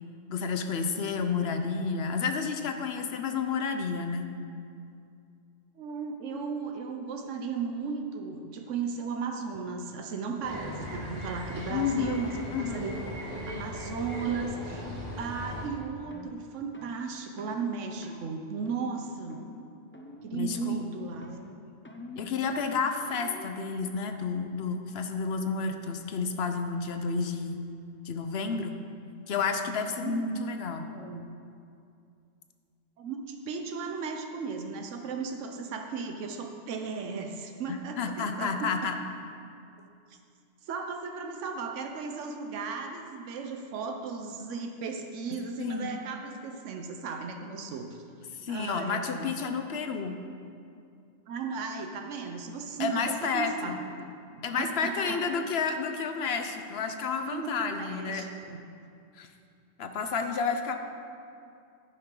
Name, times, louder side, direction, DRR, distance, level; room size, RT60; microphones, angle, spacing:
voice 1, 0.3-4.3 11.7-12.2 12.5-12.8 20.3-20.8 22.2-27.6 28.0-28.8 29.3-30.9 37.7-38.9 45.6-45.9 48.4-50.2 52.8-53.8 54.4-58.3 59.2-59.3 59.8-60.8, left 5 dB, 60° left, 6 dB, 0.9 m, -31 dB
voice 2, 5.8-14.9 15.2-19.4 20.2-21.4 30.0-30.6 30.9-31.3 33.0-38.9 39.8-40.2 40.7-48.0 48.5-49.3 51.3-54.0 54.3-55.2 57.3-58.6, right 5 dB, 85° right, 4 dB, 1.1 m, -36 dB
sound 1, 10.4-15.7, equal, 55° right, 2.4 m, -38 dB
sound 2, 13.6-13.7 14.2-14.4 14.8-15.0 15.5-15.7 16.1-16.3 16.7-17.0 17.4-17.6 18.0-18.3 18.7-19.0 19.3-19.7 19.9-20.3 20.6-20.9 21.2-23.5, left 2 dB, 15° left, 0.4 m, -47 dB
10.5 x 10.0 x 3.8 m, 2.5 s
omnidirectional pair, 1.2 m